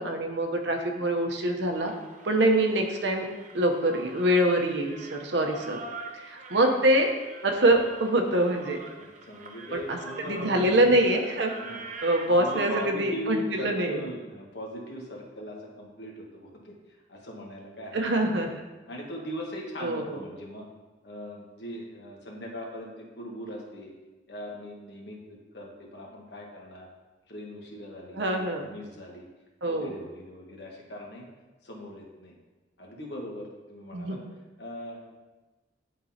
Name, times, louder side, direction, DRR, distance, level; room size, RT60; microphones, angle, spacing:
voice 1, 0.0-1.9 2.2-3.3 3.5-5.8 6.1-7.1 7.4-8.8 9.7-10.0 10.3-11.5 12.0-14.0 17.9-18.5 19.8-20.2 28.1-28.7 29.6-29.9 33.9-34.2, right 1 dB, 65° right, 3 dB, 0.8 m, -24 dB
sound 1, 1.7-12.9, right 3 dB, 40° right, 0.6 m, -43 dB
voice 2, 9.0-10.8 11.5-11.8 12.2-16.7 17.1-18.1 18.4-18.5 18.9-20.7 21.0-23.9 24.3-25.2 25.5-26.9 27.3-29.3 29.6-31.3 31.6-32.3 32.8-34.2 34.6-35.0, left 1 dB, 60° left, -1 dB, 1.3 m, -40 dB
10.5 x 3.8 x 2.8 m, 1.2 s
head